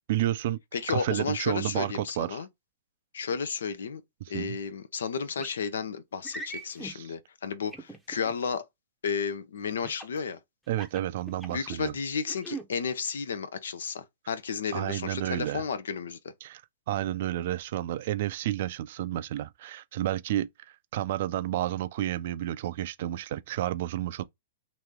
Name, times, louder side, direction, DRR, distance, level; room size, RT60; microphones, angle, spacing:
voice 1, 0.1-0.6 0.9-2.4 4.2-4.6 6.8-7.1 10.7-11.9 14.7-15.6 16.4-16.6 16.9-24.2, right 13 dB, 60° right, 0.4 m, -31 dB
voice 2, 0.7-2.5 3.1-4.0 4.3-8.6 9.0-10.4 11.5-16.2, left 6 dB, 80° left, 0.6 m, -32 dB
sound 1, 5.4-5.6 6.2-6.9 7.7-8.3 9.8-10.2 10.7-11.8 12.2-12.6, right 2 dB, ahead, 0.7 m, -40 dB
3.0 x 2.7 x 3.4 m
hypercardioid pair, 125°, 0 cm